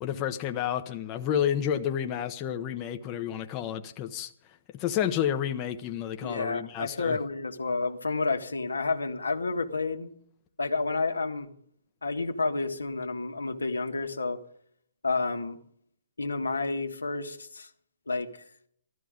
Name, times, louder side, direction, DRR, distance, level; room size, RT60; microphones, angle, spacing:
voice 1, 0.0-4.3 4.7-7.2, left 9 dB, 30° left, 0.9 m, -30 dB
voice 2, 6.2-10.1 10.6-11.5 12.0-14.4 15.0-15.6 16.2-17.7 18.1-18.4, left 3 dB, 90° left, 1.7 m, -30 dB
14.0 x 13.0 x 5.1 m
hypercardioid pair, 135°, 0 cm